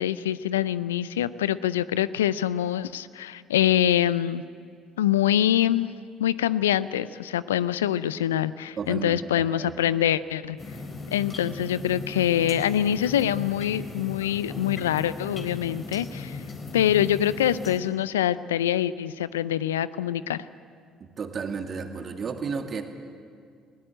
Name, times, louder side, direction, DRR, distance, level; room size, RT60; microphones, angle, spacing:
voice 1, 0.0-4.4 5.0-5.9 6.2-10.6 11.1-16.4 16.7-20.4, left 11 dB, 85° left, 17 dB, 0.5 m, -25 dB
voice 2, 8.8-9.8 21.0-22.8, right 5 dB, 45° right, 5 dB, 2.3 m, -33 dB
sound 1, 10.6-17.8, left 3 dB, 40° left, 3.9 m, -37 dB
19.5 x 18.0 x 9.0 m, 2.2 s
hypercardioid pair, 55°, 0 cm